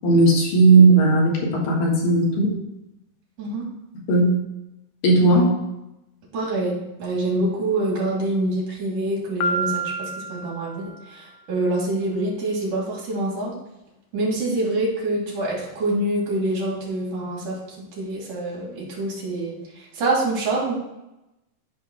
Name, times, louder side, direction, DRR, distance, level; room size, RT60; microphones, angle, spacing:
voice 1, 0.0-2.5 4.1-4.3 5.0-5.5, right 3 dB, 60° left, -3 dB, 2.9 m, -16 dB
voice 2, 6.3-13.5 14.1-17.6 18.0-20.7, right 2 dB, 50° right, -4 dB, 3.4 m, -26 dB
Piano, 9.4-11.3, right 2 dB, 85° left, 2.9 m, -29 dB
14.0 x 4.8 x 2.3 m, 0.92 s
omnidirectional pair, 5.1 m